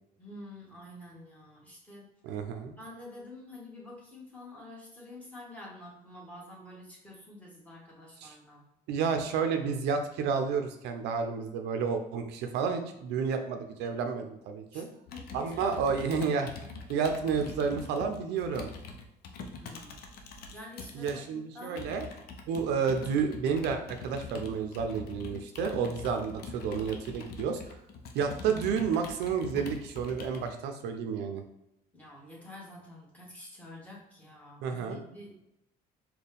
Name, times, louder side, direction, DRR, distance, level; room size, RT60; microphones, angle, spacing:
voice 1, 0.2-2.1 2.8-8.6 14.7-14.8 15.1-16.0 19.6-21.8 31.9-35.3, left 1 dB, 10° left, -4 dB, 1.5 m, -48 dB
voice 2, 2.2-2.7 8.2-8.3 8.9-14.9 15.3-18.7 20.9-22.0 22.5-27.8 28.1-31.4 34.6-35.0, right 6 dB, 85° right, 6 dB, 0.5 m, -31 dB
Computer keyboard, 15.1-21.2 21.8-30.5, left 4 dB, 70° left, 0.6 m, -44 dB
4.2 x 2.2 x 3.4 m, 0.84 s
cardioid pair, 110°, 17 cm